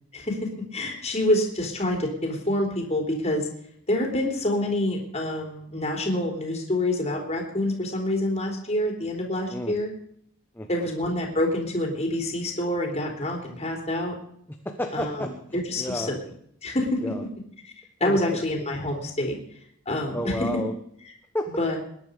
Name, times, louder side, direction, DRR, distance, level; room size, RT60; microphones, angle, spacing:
voice 1, 0.7-3.5 3.9-9.9 10.7-14.1 14.9-15.2 15.7-16.2 16.6-17.0 18.0-19.4 19.9-20.5 21.6-21.8, left 1 dB, 30° left, 1 dB, 3.5 m, -27 dB
voice 2, 10.5-10.9 14.5-16.2 17.0-17.3 18.0-18.4 20.1-20.7 21.3-21.5, left 1 dB, 10° left, 4 dB, 1.1 m, -32 dB
20.5 x 10.5 x 5.2 m, 0.67 s
head